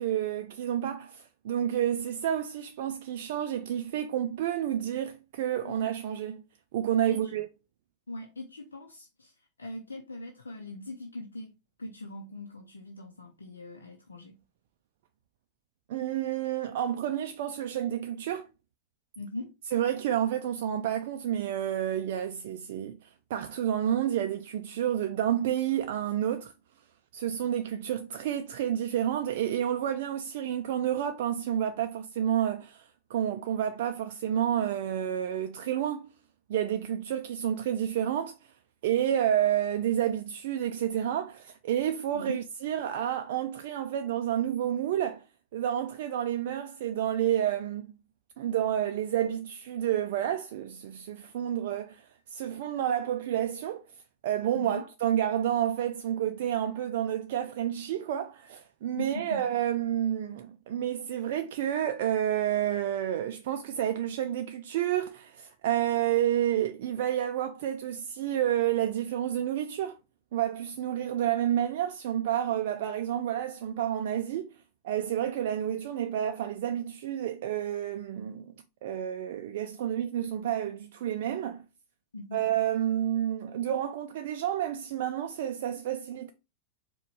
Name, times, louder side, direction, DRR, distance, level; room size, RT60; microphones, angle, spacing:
voice 1, 0.0-6.4 6.7-7.5 15.9-18.5 19.7-26.5 27.1-36.1 36.5-38.4 38.8-45.2 45.5-47.9 48.4-53.8 54.2-70.0 70.3-74.6 74.8-78.5 78.8-81.6 82.3-86.3, right 10 dB, 55° right, 0.4 m, -30 dB
voice 2, 8.1-11.5 11.8-14.4 19.2-19.5 42.1-42.4 54.6-54.9 59.0-59.5 82.1-82.4, left 2 dB, 75° left, 0.6 m, -41 dB
4.6 x 2.3 x 4.5 m
figure-of-eight pair, 90°, 0 cm